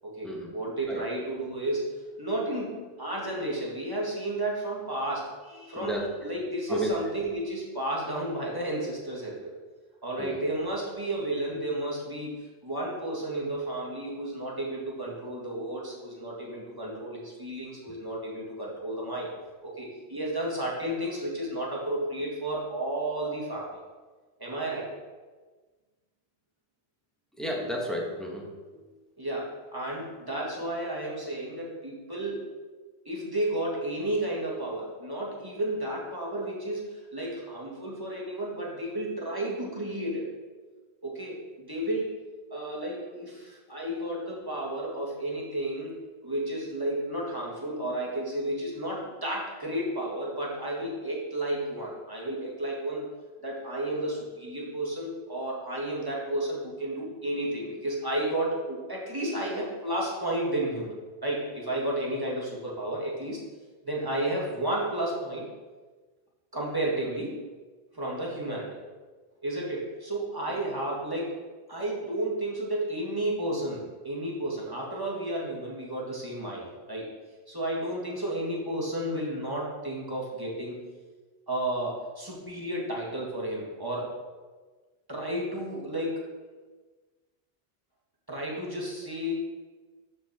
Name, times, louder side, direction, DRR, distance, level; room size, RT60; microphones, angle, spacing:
voice 1, 0.0-9.5 10.0-19.3 19.6-23.8 24.4-24.9 29.2-32.5 33.1-40.3 41.0-42.1 42.5-46.0 46.2-53.1 53.4-60.9 61.2-63.4 63.8-65.4 66.5-67.3 67.9-68.8 69.4-71.4 71.7-77.1 77.5-80.8 81.5-84.1 85.1-86.2 88.3-89.3, right 1 dB, 20° right, -4 dB, 1.9 m, -32 dB
voice 2, 27.4-28.4, equal, ahead, -2 dB, 1.5 m, -32 dB
13.0 x 4.5 x 4.3 m, 1.3 s
omnidirectional pair, 1.0 m